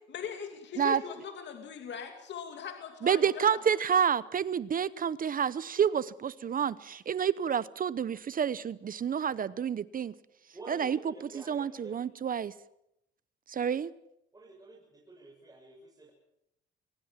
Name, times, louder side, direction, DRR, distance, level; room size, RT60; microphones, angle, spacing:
voice 1, 0.1-3.6, left 7 dB, 65° left, 5 dB, 2.6 m, -40 dB
voice 2, 3.0-10.1 10.7-11.0 11.5-12.5 13.5-13.9, right 8 dB, 45° right, 18 dB, 0.8 m, -29 dB
voice 3, 10.5-12.0 14.3-16.1, right 2 dB, 20° right, -2 dB, 6.9 m, -49 dB
24.0 x 20.0 x 7.4 m, 0.81 s
cardioid pair, 90°, 20 cm